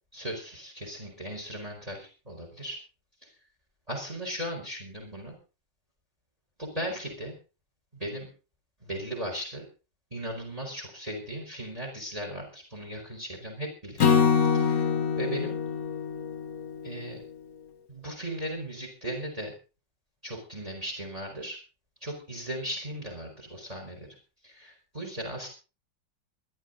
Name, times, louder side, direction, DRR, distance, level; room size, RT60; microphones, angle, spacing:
voice 1, 0.1-2.8 3.9-5.3 6.6-7.3 7.9-8.3 8.8-9.6 10.1-14.2 14.5-14.9 15.2-15.6 16.8-17.2 17.9-19.5 20.2-21.6 22.0-24.1 24.4-25.5, right 1 dB, 20° right, 2 dB, 5.0 m, -37 dB
Acoustic guitar / Strum, 14.0-17.3, left 6 dB, 55° left, 1.6 m, -25 dB
22.5 x 11.5 x 4.0 m, 0.34 s
omnidirectional pair, 2.0 m